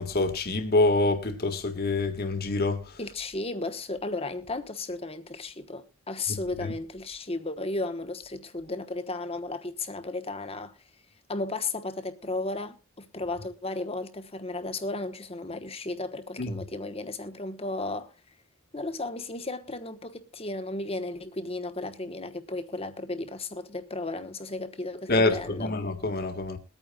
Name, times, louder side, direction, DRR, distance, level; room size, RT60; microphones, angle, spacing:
voice 1, 0.0-3.0 6.3-6.7 16.4-16.5 25.1-26.6, left 2 dB, 50° left, 1.8 m, -26 dB
voice 2, 3.0-10.7 11.3-18.1 18.7-25.7, left 2 dB, 30° left, 1.2 m, -34 dB
22.0 x 9.1 x 2.3 m
head